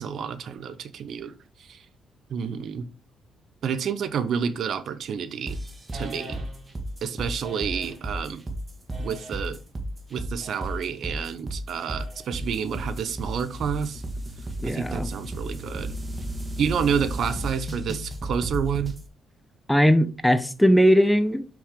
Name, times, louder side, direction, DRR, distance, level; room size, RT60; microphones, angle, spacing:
voice 1, 0.0-1.3 1.6-1.8 2.3-2.9 3.6-5.6 5.9-6.4 7.0-8.4 9.0-9.6 10.1-14.0 14.6-15.9 16.6-18.9, right 7 dB, 65° right, 0.8 m, -29 dB
sound 1, 5.5-19.0, right 1 dB, 25° right, 1.9 m, -33 dB
sound 2, 5.9-6.8 7.4-8.1 8.9-9.6 10.4-11.0 11.9-12.6, equal, 40° right, 3.7 m, -44 dB
voice 2, 14.6-15.1 19.7-21.5, equal, 5° left, 0.8 m, -19 dB
6.4 x 6.0 x 3.7 m
cardioid pair, 90°, 0 cm